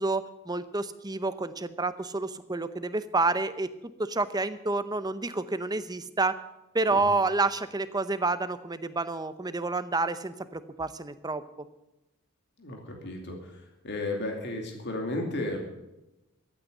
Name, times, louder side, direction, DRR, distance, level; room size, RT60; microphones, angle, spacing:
voice 1, 0.0-3.7 4.0-6.3 6.7-11.4, right 3 dB, 15° right, 12 dB, 0.7 m, -29 dB
voice 2, 12.6-15.6, left 2 dB, 50° left, 2 dB, 2.7 m, -34 dB
14.5 x 9.0 x 8.0 m, 0.95 s
head